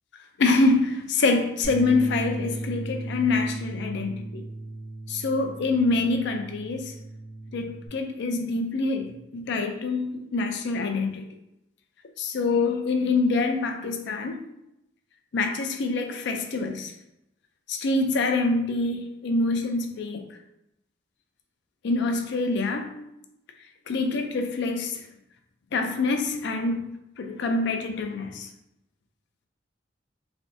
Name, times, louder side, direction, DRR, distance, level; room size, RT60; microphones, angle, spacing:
voice 1, 0.4-4.4 5.1-6.9 7.5-11.2 12.2-14.4 15.3-16.9 17.7-20.4 21.8-23.0 23.9-25.0 25.7-26.9 27.2-28.5, left 3 dB, 65° left, 5 dB, 0.4 m, -25 dB
Bass guitar, 1.6-7.9, right 2 dB, 10° left, 1.5 m, -36 dB
3.3 x 2.5 x 2.6 m, 0.84 s
head